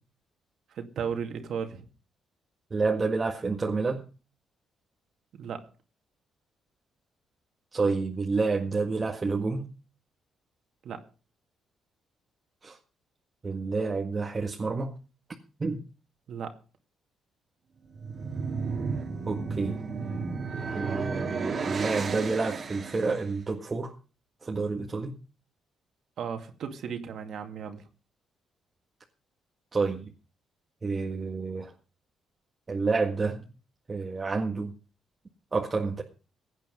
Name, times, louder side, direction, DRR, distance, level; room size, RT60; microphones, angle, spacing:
voice 1, 0.7-1.9 5.3-5.7 10.8-11.0 16.3-16.6 26.2-27.8, right 7 dB, 65° right, 6 dB, 2.4 m, -35 dB
voice 2, 2.7-4.0 7.7-9.7 12.6-12.8 13.4-14.9 15.6-15.8 19.3-19.8 20.7-23.9 24.4-25.2 29.7-30.0 30.8-31.7 32.7-33.4 33.9-34.7 35.5-36.0, right 4 dB, 30° right, 1 dB, 1.8 m, -29 dB
sound 1, 17.8-23.3, right 4 dB, 45° right, 2.3 m, -33 dB
16.5 x 9.2 x 5.4 m, 0.35 s
cardioid pair, 90°, 0 cm